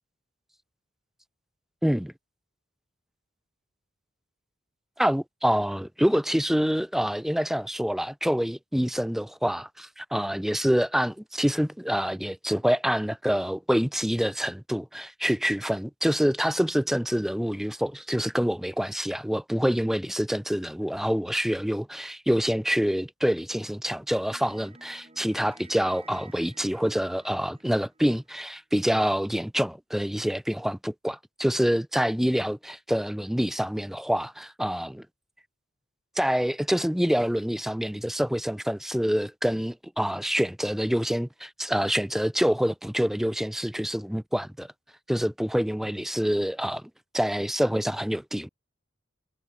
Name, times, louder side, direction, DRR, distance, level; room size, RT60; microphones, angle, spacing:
voice 1, 1.8-2.1 5.0-35.1 36.2-44.7 45.1-46.8 47.1-48.5, equal, ahead, 0.4 m, -26 dB
sound 1, 24.3-28.6, right 3 dB, 30° right, 3.8 m, -54 dB
head